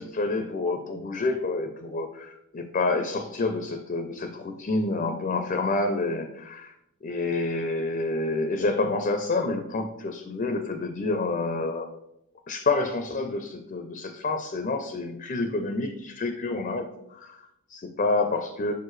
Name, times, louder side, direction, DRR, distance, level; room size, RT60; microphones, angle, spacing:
voice 1, 0.0-6.7 7.0-11.9 12.5-18.7, left 3 dB, 35° left, 6 dB, 0.4 m, -28 dB
6.7 x 4.6 x 3.1 m, 0.82 s
head